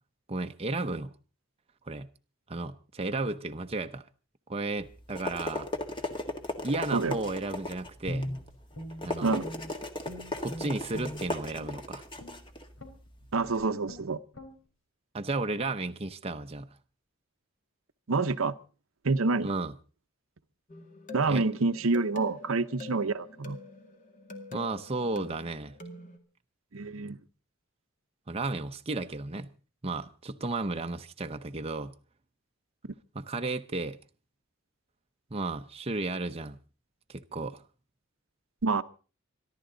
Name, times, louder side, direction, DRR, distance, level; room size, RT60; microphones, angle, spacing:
voice 1, 0.3-1.1 1.9-2.1 2.5-4.0 4.5-5.7 6.6-8.3 9.0-9.4 10.4-12.0 15.1-16.7 19.4-19.7 21.3-21.4 24.5-25.7 28.3-29.5 29.8-31.9 33.1-34.0 35.3-36.6 37.1-37.6, right 2 dB, 30° right, 0.8 m, -33 dB
sound 1, 4.8-13.7, left 2 dB, 25° left, 1.7 m, -37 dB
Guitar, 8.0-9.8 10.0-11.8 12.2-12.4 12.8-13.1 13.4-13.6 13.8-14.1 14.3-14.5, equal, 80° left, 4.0 m, -39 dB
voice 2, 13.3-14.2 18.1-18.5 19.0-19.5 21.1-23.6 26.7-27.2 38.6-38.8, right 3 dB, 75° right, 0.8 m, -27 dB
sound 2, 20.7-26.2, left 3 dB, 40° left, 2.2 m, -46 dB
26.5 x 11.5 x 3.9 m
head